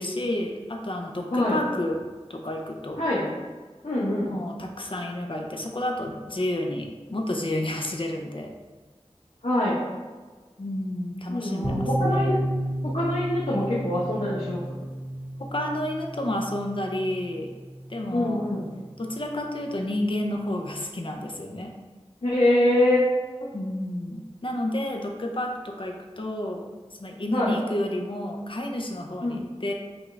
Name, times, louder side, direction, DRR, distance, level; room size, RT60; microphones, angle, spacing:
voice 1, 0.0-2.0 2.3-3.0 4.2-8.5 10.6-12.3 15.4-17.5 17.9-18.5 19.0-21.7 23.5-26.7 27.0-29.7, left 1 dB, 50° left, 1 dB, 0.6 m, -30 dB
voice 2, 3.0-3.3 3.8-4.4 9.4-9.8 11.3-12.4 12.8-14.6 18.1-18.7 22.2-23.0 27.3-27.5 29.2-29.4, left 1 dB, 90° left, -8 dB, 0.9 m, -24 dB
sound 1, 11.6-19.3, right 1 dB, 15° right, 0.9 m, -32 dB
6.1 x 2.4 x 3.2 m, 1.4 s
wide cardioid pair, 40°, 11 cm